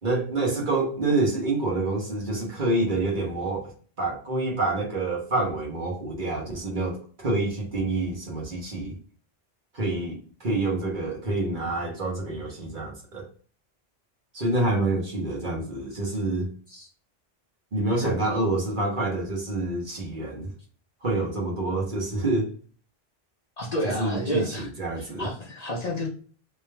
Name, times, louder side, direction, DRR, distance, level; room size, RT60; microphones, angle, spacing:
voice 1, 0.0-3.7 4.0-9.0 9.7-13.2 14.3-16.5 17.7-20.5 21.0-22.5 23.8-25.3, right 2 dB, 50° right, 1.3 m, -27 dB
voice 2, 23.6-24.7 25.0-26.1, equal, 40° left, 1.0 m, -30 dB
3.4 x 3.0 x 3.3 m
omnidirectional pair, 1.0 m